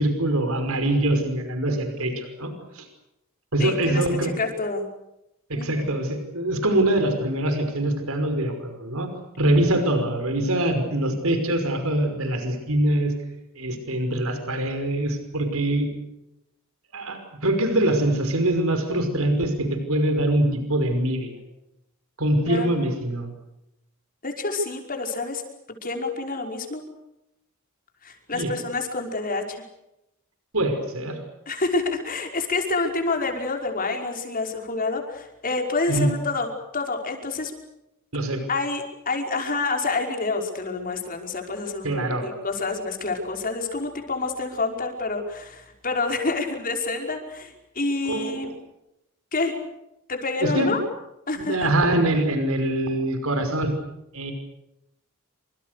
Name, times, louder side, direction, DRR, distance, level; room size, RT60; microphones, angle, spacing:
voice 1, 0.0-2.9 3.5-4.3 5.5-9.1 9.4-13.1 13.6-15.9 16.9-21.4 22.2-23.3 28.3-28.5 30.5-31.2 35.9-36.1 38.1-38.4 41.8-42.3 48.1-48.5 50.4-50.7 51.4-53.7 54.1-54.3, right 1 dB, 75° right, 7 dB, 5.6 m, -24 dB
voice 2, 3.6-4.9 5.5-5.9 22.4-22.9 24.2-25.4 25.8-26.8 28.0-29.6 31.5-37.5 38.5-48.5 49.3-49.5 50.1-50.8 51.3-51.7, left 3 dB, 40° left, 3 dB, 5.4 m, -28 dB
28.5 x 26.5 x 6.8 m, 0.87 s
head